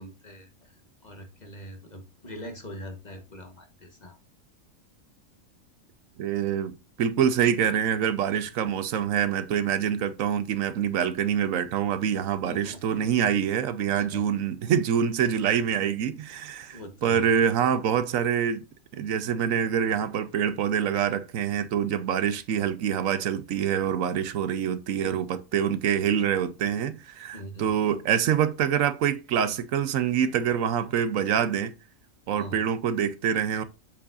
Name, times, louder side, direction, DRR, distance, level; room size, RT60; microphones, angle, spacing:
voice 1, 0.0-4.2 12.4-13.1 13.9-14.2 16.7-17.3 25.0-25.2 27.3-27.7 32.4-32.6, equal, 35° left, 1.3 m, -42 dB
voice 2, 6.2-18.6 18.9-31.7 32.3-33.6, right 8 dB, 85° right, 1.1 m, -26 dB
7.8 x 6.9 x 2.5 m
omnidirectional pair, 1.4 m